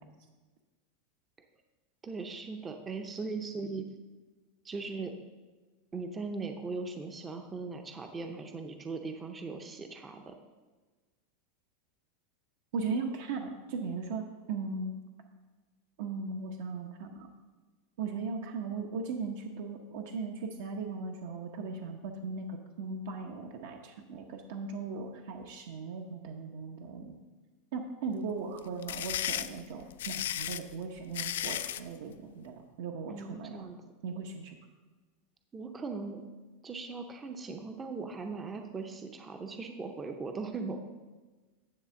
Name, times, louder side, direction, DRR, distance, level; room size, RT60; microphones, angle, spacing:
voice 1, 2.0-3.9 4.6-5.2 5.9-10.3 33.1-33.8 35.5-36.2 36.6-40.8, right 4 dB, 15° right, 5 dB, 0.6 m, -39 dB
voice 2, 12.7-14.9 16.0-17.3 18.0-27.2 27.7-33.7 34.0-34.6, right 4 dB, 70° right, 2 dB, 0.8 m, -38 dB
sound 1, 28.6-31.9, left 11 dB, 90° left, 0.3 m, -34 dB
10.0 x 3.4 x 6.9 m, 1.3 s
supercardioid pair, 150°, 0 cm